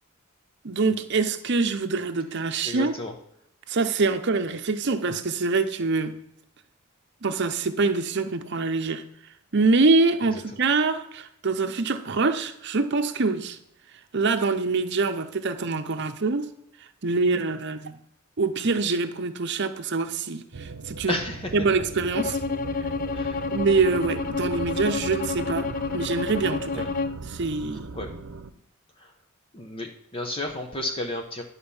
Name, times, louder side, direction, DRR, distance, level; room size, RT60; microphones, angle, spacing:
voice 1, 0.6-2.9 3.7-6.1 7.2-9.0 9.5-13.6 14.1-16.5 17.0-18.0 18.4-21.2 21.5-22.4 23.5-25.7 25.9-26.9 27.3-27.9, right 3 dB, 55° right, 7 dB, 0.8 m, -25 dB
voice 2, 2.6-3.1 21.1-21.5 23.1-23.4 26.7-26.8 27.9-28.1 29.0-29.1 29.5-31.4, left 2 dB, 25° left, 3 dB, 0.9 m, -32 dB
sound 1, 20.5-28.5, right 3 dB, 85° right, 0.7 m, -38 dB
Bowed string instrument, 22.1-27.2, left 4 dB, 40° left, 0.4 m, -30 dB
11.0 x 4.2 x 7.0 m, 0.76 s
head